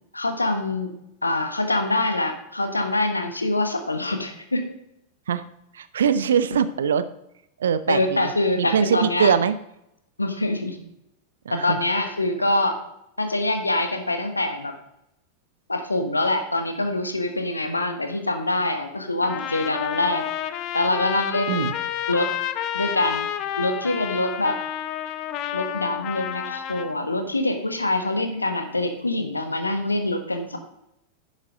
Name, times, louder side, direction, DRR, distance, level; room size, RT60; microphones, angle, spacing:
voice 1, 0.1-0.9 1.2-4.6 7.9-9.3 10.2-10.8 11.5-12.8 13.2-14.7 15.7-20.2 20.7-21.6 22.1-22.3 22.7-23.3 23.6-24.6 25.5-30.6, left 2 dB, 80° left, 6 dB, 1.3 m, -24 dB
voice 2, 5.7-7.0 7.6-8.2 8.6-9.5 11.5-11.8 21.5-21.7, right 7 dB, 65° right, 14 dB, 0.6 m, -22 dB
Trumpet, 19.2-27.0, left 11 dB, 40° left, 0.7 m, -30 dB
11.0 x 7.3 x 3.7 m, 0.81 s
figure-of-eight pair, 90°, 0 cm